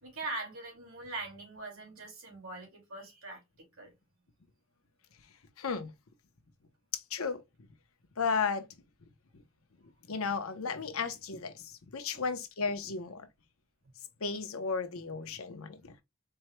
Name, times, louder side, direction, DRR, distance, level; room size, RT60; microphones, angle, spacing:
voice 1, 0.0-3.9 12.1-12.2, right 2 dB, 85° right, 2.4 m, -42 dB
voice 2, 5.6-5.9 6.9-7.4 8.2-8.7 9.3-9.4 10.1-13.3 14.2-16.0, left 5 dB, 80° left, 0.8 m, -34 dB
4.5 x 2.2 x 3.0 m
head